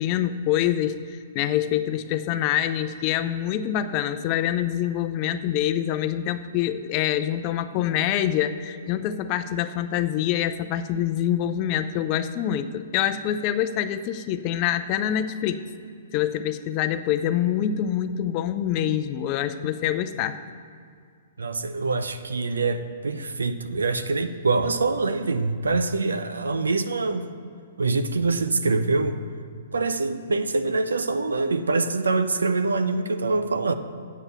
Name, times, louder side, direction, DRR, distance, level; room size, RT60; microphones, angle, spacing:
voice 1, 0.0-15.6 16.1-20.4, left 11 dB, 40° left, 10 dB, 0.6 m, -25 dB
voice 2, 21.4-27.3 27.8-29.2 29.7-33.7, right 3 dB, 90° right, 10 dB, 0.6 m, -24 dB
8.4 x 7.2 x 6.8 m, 2.2 s
hypercardioid pair, 130°, 0 cm